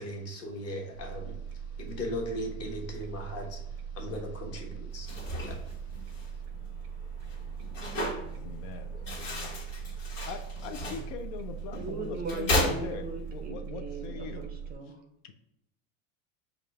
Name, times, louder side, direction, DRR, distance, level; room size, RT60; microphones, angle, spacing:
voice 1, 0.0-1.4 1.8-5.1 5.4-5.6, left 1 dB, 40° left, 1 dB, 1.1 m, -38 dB
sound 1, 0.9-14.7, right 7 dB, 90° right, 0.7 m, -40 dB
sound 2, 4.9-13.5, left 1 dB, 85° left, 1.5 m, -36 dB
voice 2, 8.3-9.6 10.2-14.5 15.2-15.3, left 5 dB, 65° left, 6 dB, 0.5 m, -41 dB
voice 3, 11.7-15.0, right 4 dB, 25° right, 4 dB, 0.4 m, -38 dB
4.9 x 2.4 x 3.4 m, 0.85 s
supercardioid pair, 115°, 39 cm